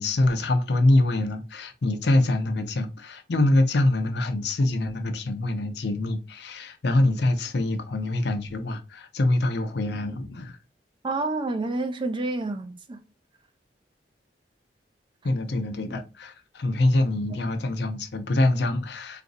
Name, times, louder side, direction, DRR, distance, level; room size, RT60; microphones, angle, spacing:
voice 1, 0.0-10.6 15.2-19.2, left 2 dB, 70° left, 0.6 m, -24 dB
voice 2, 11.0-13.0 15.9-16.0, right 2 dB, 30° right, 0.4 m, -29 dB
3.9 x 2.5 x 2.5 m
head